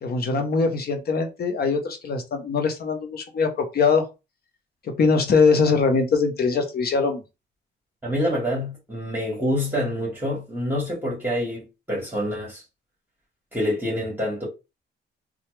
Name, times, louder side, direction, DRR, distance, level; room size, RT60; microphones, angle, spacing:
voice 1, 0.0-4.0 4.9-7.2, left 4 dB, 50° left, 0.9 m, -22 dB
voice 2, 8.0-12.6 13.5-14.4, equal, 10° right, 1.6 m, -26 dB
2.8 x 2.4 x 3.2 m
cardioid pair, 90°, 20 cm